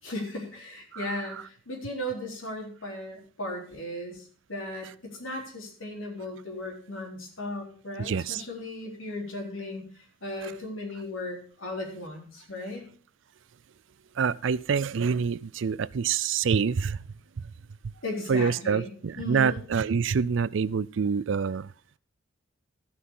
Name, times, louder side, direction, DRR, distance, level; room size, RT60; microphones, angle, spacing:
voice 1, 0.0-9.9 10.2-12.9 18.0-19.6, left 1 dB, 85° left, 3.6 m, -36 dB
voice 2, 8.1-8.4 14.2-17.0 18.3-21.7, right 6 dB, 70° right, 0.4 m, -26 dB
13.5 x 6.2 x 5.4 m
head